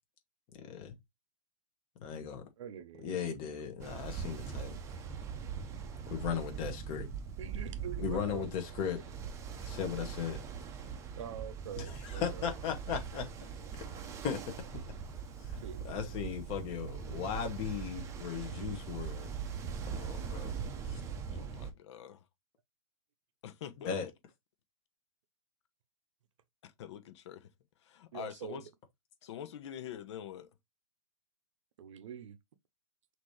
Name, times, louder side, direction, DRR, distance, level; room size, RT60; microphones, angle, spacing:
voice 1, 0.5-1.0 2.0-2.5 3.0-4.8 6.1-7.1 8.0-9.0 9.6-10.4 11.8-13.3 14.2-14.5 15.4-19.3 19.9-20.5 20.8-21.0 23.8-24.1, left 7 dB, 30° left, 1.2 m, -37 dB
voice 2, 2.6-4.1 7.4-8.5 11.2-12.8 15.5-16.0 28.1-28.6 31.8-32.4, right 9 dB, 65° right, 0.8 m, -45 dB
Ocean, 3.8-21.7, right 6 dB, 15° right, 0.7 m, -41 dB
voice 3, 21.3-22.2 23.4-24.0 26.6-27.5 27.8-28.6 29.2-30.5, left 9 dB, 55° left, 0.9 m, -45 dB
6.0 x 2.8 x 3.1 m
hypercardioid pair, 150°, 18 cm